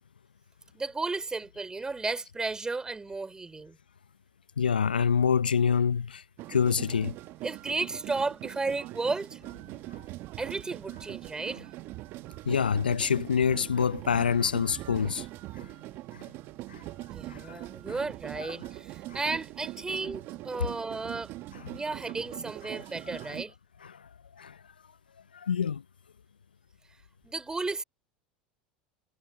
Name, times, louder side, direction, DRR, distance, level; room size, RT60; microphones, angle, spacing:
voice 1, 0.7-3.8 7.4-9.4 10.4-11.7 17.1-21.3 21.7-23.5 27.2-27.8, right 3 dB, 15° right, 3.4 m, -34 dB
voice 2, 4.6-6.2 6.5-7.1 12.5-15.3 15.6-15.7 16.7-16.8 17.3-17.7 18.4-18.5 23.1-23.2 23.8-24.0 24.4-24.6 25.3-25.8, left 7 dB, 90° left, 0.6 m, -26 dB
sound 1, 6.4-23.5, right 18 dB, 50° right, 1.6 m, -42 dB
hypercardioid pair, 80°, 5 cm